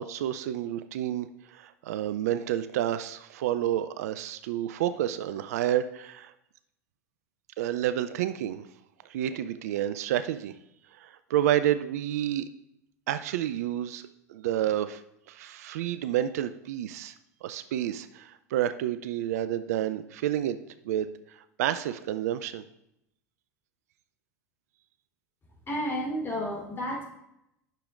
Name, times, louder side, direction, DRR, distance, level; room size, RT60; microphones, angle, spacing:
voice 1, 0.0-6.3 7.6-8.7 9.0-10.5 10.9-12.5 13.1-15.0 15.3-17.1 17.4-20.6 20.8-22.6, right 11 dB, 70° right, 12 dB, 0.4 m, -30 dB
voice 2, 25.7-27.0, equal, 25° left, -3 dB, 3.2 m, -31 dB
10.5 x 6.5 x 2.5 m, 0.80 s
hypercardioid pair, 80°, 9 cm